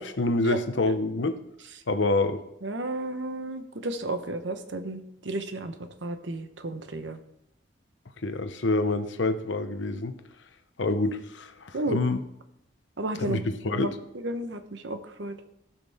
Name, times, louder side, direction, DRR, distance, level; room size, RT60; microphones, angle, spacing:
voice 1, 0.0-1.4 1.9-2.4 8.2-10.2 10.8-12.2 13.1-14.0, left 2 dB, 80° left, 9 dB, 0.8 m, -27 dB
voice 2, 2.6-5.7 6.0-7.2 11.7-12.0 13.0-13.5 13.7-13.9 14.2-15.4, right 2 dB, 75° right, 8 dB, 1.0 m, -32 dB
16.5 x 5.9 x 3.5 m, 0.83 s
head